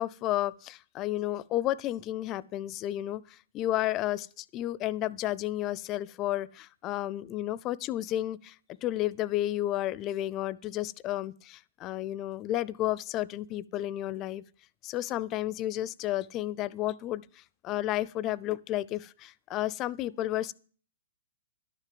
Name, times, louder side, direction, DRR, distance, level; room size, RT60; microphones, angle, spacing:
voice 1, 0.0-8.5 8.8-14.4 14.8-20.5, left 14 dB, 30° left, 0.4 m, -32 dB
11.5 x 6.6 x 7.6 m
hypercardioid pair, 140°, 0 cm